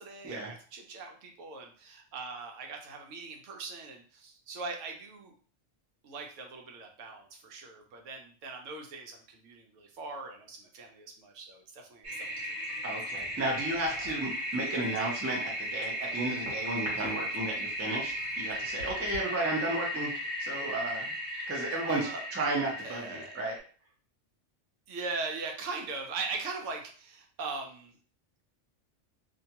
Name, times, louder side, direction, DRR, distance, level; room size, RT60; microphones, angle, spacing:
voice 1, 0.0-5.3 6.0-12.6 21.9-22.2 22.8-23.4 24.9-27.9, right 4 dB, 85° right, 3 dB, 1.0 m, -40 dB
Toilet flush, 12.0-23.6, equal, 70° right, 1.2 m, -36 dB
voice 2, 12.8-21.1 21.5-23.6, right 2 dB, 20° right, -1 dB, 0.4 m, -33 dB
2.4 x 2.3 x 2.8 m, 0.43 s
omnidirectional pair, 1.2 m